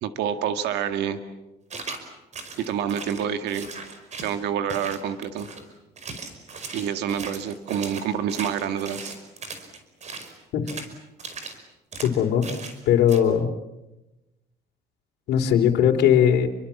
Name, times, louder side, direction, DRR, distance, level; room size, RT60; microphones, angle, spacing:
voice 1, 0.0-1.2 2.6-3.7 4.2-5.5 6.7-9.1, right 8 dB, 85° right, 8 dB, 2.0 m, -27 dB
sound 1, 1.7-2.0 2.3-4.4 4.7-5.6 6.0-10.3 10.7-10.9 11.2-11.6 11.9-12.1 12.4-12.8 13.1-13.2, right 4 dB, 40° right, 5.3 m, -38 dB
voice 2, 12.0-12.5 12.9-13.5 15.3-16.5, left 9 dB, 75° left, 2 dB, 3.7 m, -19 dB
30.0 x 24.5 x 7.3 m, 0.98 s
cardioid pair, 110°, 17 cm